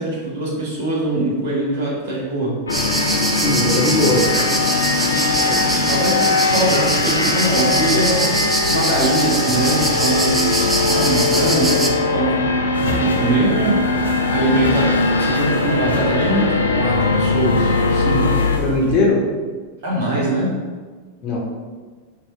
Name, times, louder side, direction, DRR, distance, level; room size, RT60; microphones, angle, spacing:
voice 1, 0.0-2.6 5.3-12.4 12.8-14.0 14.3-18.4 19.8-20.6, right 2 dB, 55° right, -4 dB, 1.3 m, -22 dB
sound 1, 2.7-18.6, left 3 dB, 75° left, 0.4 m, -20 dB
sound 2, 2.7-11.9, right 2 dB, 10° right, 0.5 m, -23 dB
voice 2, 3.3-4.2 18.6-19.2 21.2-21.4, left 2 dB, 35° left, -3 dB, 1.0 m, -19 dB
sound 3, 12.7-18.9, left 1 dB, 75° right, 0.7 m, -33 dB
4.1 x 2.2 x 4.5 m, 1.5 s
figure-of-eight pair, 90°, 0 cm